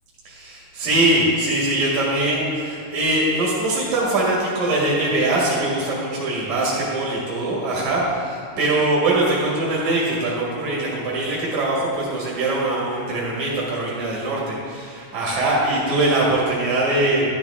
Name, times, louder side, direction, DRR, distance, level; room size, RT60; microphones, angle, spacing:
voice 1, 0.2-17.4, right 2 dB, 65° right, -6 dB, 3.2 m, -22 dB
12.0 x 12.0 x 3.6 m, 2.2 s
omnidirectional pair, 3.7 m